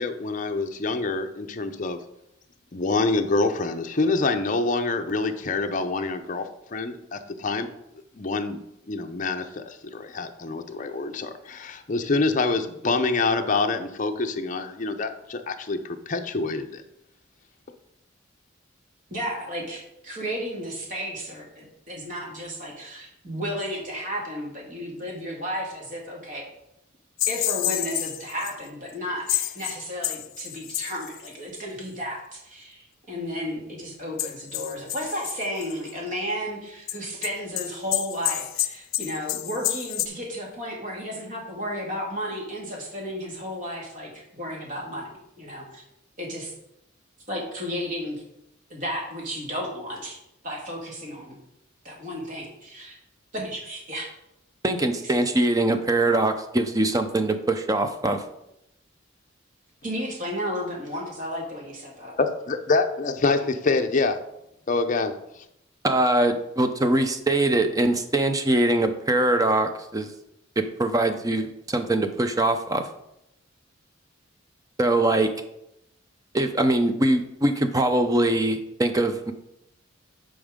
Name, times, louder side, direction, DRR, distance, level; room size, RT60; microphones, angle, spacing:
voice 1, 0.0-2.0 2.7-6.4 6.7-7.7 8.2-8.6 8.9-9.6 9.9-15.8 16.1-16.8 62.2-64.2 64.7-65.1, left 3 dB, 40° left, 6 dB, 0.6 m, -26 dB
voice 2, 19.1-26.4 27.3-45.8 46.2-46.5 47.3-48.2 48.7-50.2 50.4-51.4 51.8-53.0 53.3-54.1 54.9-55.2 59.8-62.1, equal, 40° right, -1 dB, 1.9 m, -33 dB
sound 1, 27.2-28.5 28.9-29.0 29.3-31.6 34.2-35.9 36.9-40.1, left 14 dB, 90° left, 0.5 m, -29 dB
voice 3, 54.6-58.2 65.8-70.1 70.6-72.9 74.8-75.3 76.3-79.3, right 1 dB, 20° right, 8 dB, 0.5 m, -22 dB
8.4 x 5.2 x 3.7 m, 0.83 s
head